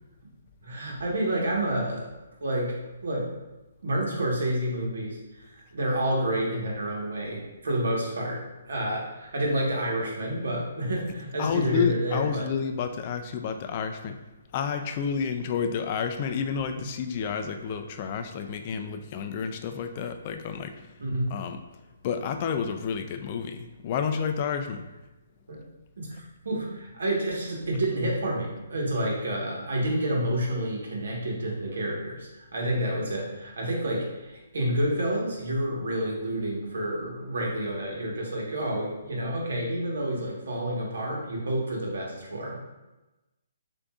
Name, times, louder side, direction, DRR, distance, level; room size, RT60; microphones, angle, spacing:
voice 1, 0.6-2.1 2.4-2.8 3.0-3.3 3.8-5.2 5.7-12.5 16.7-16.8 21.0-21.3 25.5-25.6 26.0-26.1 26.4-42.6, right 1 dB, 75° right, -2 dB, 1.3 m, -29 dB
voice 2, 11.4-14.2 14.5-20.9 21.3-21.6 22.0-24.8, left 6 dB, 35° left, 6 dB, 0.3 m, -30 dB
6.6 x 2.6 x 2.4 m, 1.1 s
hypercardioid pair, 155°, 0 cm